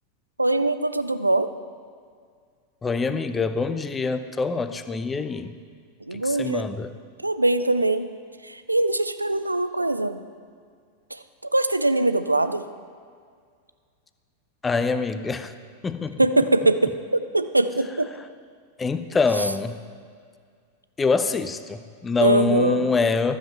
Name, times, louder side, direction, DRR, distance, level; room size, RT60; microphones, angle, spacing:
voice 1, 0.4-1.5 6.1-6.7 7.2-8.1 8.4-10.2 11.1-11.2 11.5-12.6 16.2-18.1 22.2-22.9, right 2 dB, 85° right, 11 dB, 0.4 m, -22 dB
voice 2, 2.8-5.5 6.1-6.9 14.6-15.5 15.8-16.2 18.8-19.8 21.0-23.4, left 4 dB, 15° left, 11 dB, 0.5 m, -25 dB
12.5 x 7.3 x 4.5 m, 2.1 s
figure-of-eight pair, 90°, 0 cm